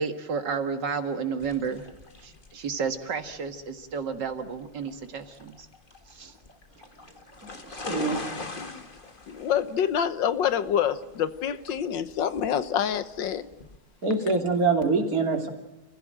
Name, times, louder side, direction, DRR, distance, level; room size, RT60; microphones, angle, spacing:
voice 1, 0.0-1.9 2.2-5.7 6.1-6.3, right 5 dB, 65° right, 2.2 m, -31 dB
sound 1, 1.4-13.8, left 3 dB, 25° left, 2.0 m, -42 dB
voice 2, 7.6-8.3 14.0-15.5, right 4 dB, 50° right, 3.4 m, -25 dB
voice 3, 9.3-13.5, left 9 dB, 75° left, 1.7 m, -27 dB
29.5 x 15.5 x 8.9 m
omnidirectional pair, 2.1 m